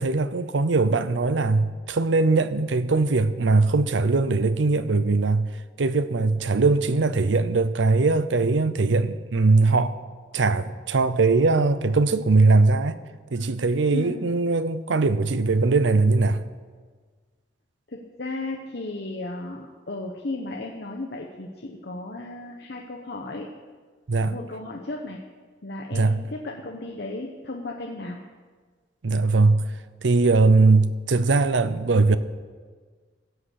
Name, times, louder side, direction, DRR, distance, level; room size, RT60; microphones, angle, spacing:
voice 1, 0.0-5.5 5.8-9.9 10.3-13.0 13.3-16.4 24.1-24.3 25.9-26.2 29.0-29.6 30.0-32.2, right 3 dB, 80° right, 0.6 m, -20 dB
voice 2, 13.9-14.2 17.9-23.5 24.2-25.2 25.6-28.2, left 2 dB, 60° left, 1.0 m, -35 dB
16.0 x 7.8 x 6.5 m
head